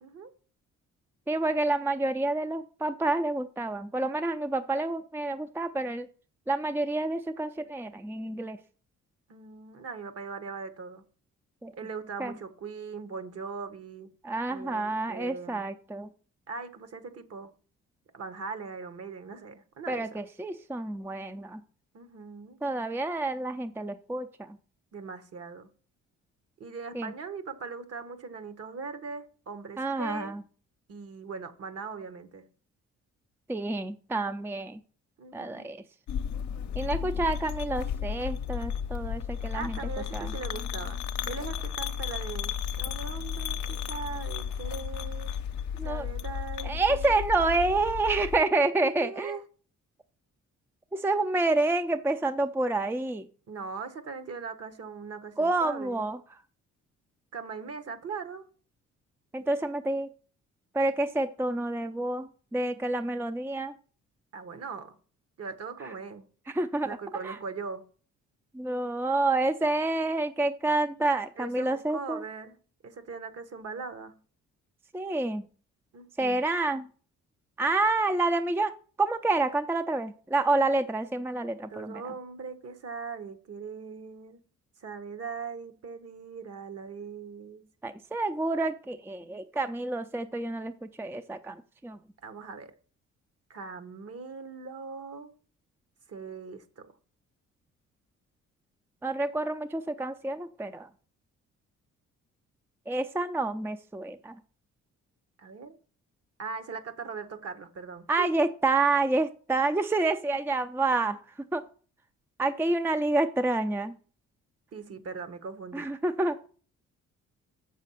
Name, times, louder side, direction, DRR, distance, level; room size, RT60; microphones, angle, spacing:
voice 1, 0.0-0.3 9.3-11.0 11.7-14.1 14.5-15.7 16.5-17.5 18.1-20.2 21.9-22.6 24.9-25.7 26.6-30.4 30.9-32.4 35.2-35.7 39.5-41.0 41.3-45.4 45.8-47.2 48.7-49.4 53.5-56.1 57.3-58.5 64.3-64.9 65.4-66.2 66.8-67.8 71.4-72.6 72.8-74.2 75.9-76.5 81.7-84.4 84.8-87.7 92.2-92.7 93.5-95.3 96.1-96.9 105.4-105.7 106.4-108.3 114.7-115.9, right 5 dB, 55° right, 1.3 m, -40 dB
voice 2, 1.3-6.1 6.5-8.6 11.6-11.7 12.2-12.3 14.2-16.1 19.9-21.6 22.6-24.5 26.9-27.1 29.8-30.4 33.5-34.8 35.3-35.8 36.8-39.8 40.1-40.3 45.8-46.1 46.6-49.4 50.9-53.3 55.4-56.2 59.3-60.1 60.7-63.7 66.5-66.9 67.2-67.4 68.5-72.2 74.9-75.5 76.2-76.9 77.6-78.7 79.0-82.0 87.8-91.6 91.8-92.0 99.0-100.9 102.9-104.4 108.1-111.2 111.5-111.6 112.4-113.9 115.7-116.5, right 2 dB, 5° right, 0.5 m, -28 dB
sound 1, 36.1-48.4, left 8 dB, 70° left, 0.7 m, -34 dB
7.4 x 6.2 x 5.7 m
cardioid pair, 90°, 30 cm